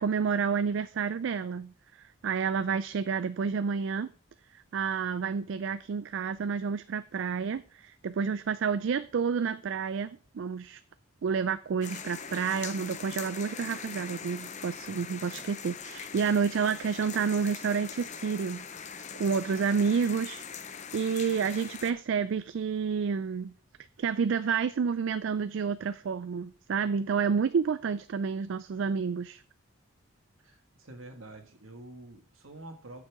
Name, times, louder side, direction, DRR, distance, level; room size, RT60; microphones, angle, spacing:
voice 1, 0.0-4.1 4.5-10.8 11.2-23.5 24.0-29.4, right 6 dB, 65° right, 0.3 m, -30 dB
sound 1, 11.8-21.9, left 7 dB, 35° left, 0.6 m, -42 dB
voice 2, 30.4-33.0, right 2 dB, 80° right, 1.7 m, -47 dB
8.6 x 6.9 x 4.7 m
head